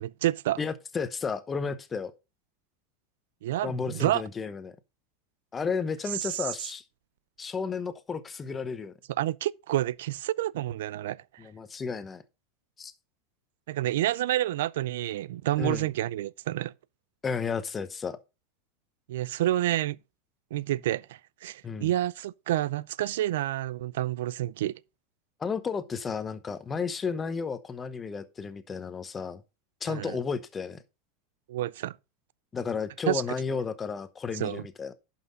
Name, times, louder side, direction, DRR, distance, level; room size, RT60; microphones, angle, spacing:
voice 1, 0.0-0.6 3.4-4.2 6.2-6.5 9.2-11.4 13.7-16.7 19.1-20.0 20.5-24.7 29.9-30.2 31.5-32.0 33.1-33.2 34.3-34.6, right 14 dB, 80° right, 0.4 m, -29 dB
voice 2, 0.6-2.1 3.6-4.7 5.5-6.8 7.4-8.9 11.4-12.2 12.8-12.9 15.6-15.9 17.2-18.2 21.6-21.9 25.4-29.4 29.8-30.8 32.5-34.9, left 5 dB, 15° left, 0.8 m, -33 dB
11.0 x 5.8 x 3.9 m
supercardioid pair, 155°, 0 cm